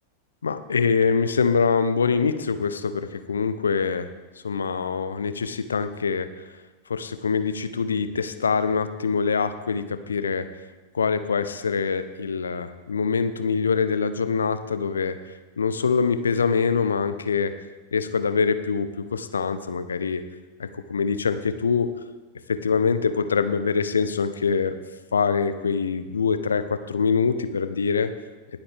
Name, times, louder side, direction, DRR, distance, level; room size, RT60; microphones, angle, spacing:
voice 1, 0.4-4.1 4.4-6.3 6.9-10.5 10.9-15.2 15.6-17.5 17.9-20.2 20.6-21.9 22.5-24.8 25.1-28.1, left 5 dB, 70° left, 11 dB, 0.7 m, -24 dB
19.5 x 7.9 x 3.5 m, 1.2 s
figure-of-eight pair, 90°, 0 cm